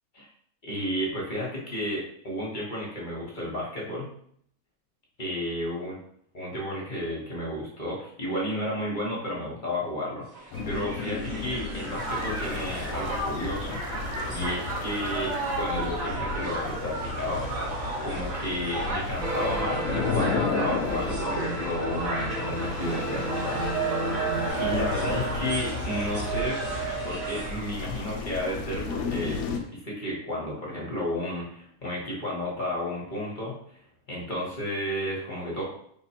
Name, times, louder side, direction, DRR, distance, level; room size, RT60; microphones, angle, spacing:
voice 1, 0.6-4.1 5.2-6.0 6.3-13.8 14.3-17.5 18.0-24.1 24.6-26.6 27.0-29.4 29.7-33.8 34.1-35.6, left 1 dB, 35° left, -4 dB, 1.0 m, -32 dB
Crowd, 10.3-27.7, right 3 dB, 70° right, 1.5 m, -33 dB
sound 1, 10.5-29.6, left 4 dB, 75° left, 1.0 m, -34 dB
sound 2, 19.2-24.5, right 1 dB, 30° right, 1.0 m, -33 dB
3.7 x 2.1 x 4.2 m, 0.66 s
omnidirectional pair, 1.6 m